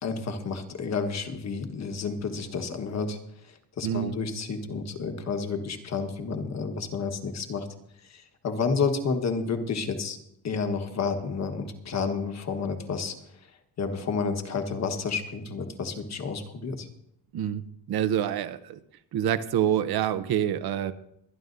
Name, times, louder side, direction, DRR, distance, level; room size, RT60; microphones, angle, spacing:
voice 1, 0.0-3.2 3.4-7.7 8.0-10.2 10.4-13.1 13.8-16.9, left 5 dB, 40° left, 6 dB, 1.3 m, -30 dB
voice 2, 3.8-4.1 17.3-17.6 17.9-18.8 19.1-20.9, right 10 dB, 65° right, 13 dB, 0.8 m, -26 dB
24.0 x 10.5 x 2.6 m, 0.78 s
cardioid pair, 170°, 41 cm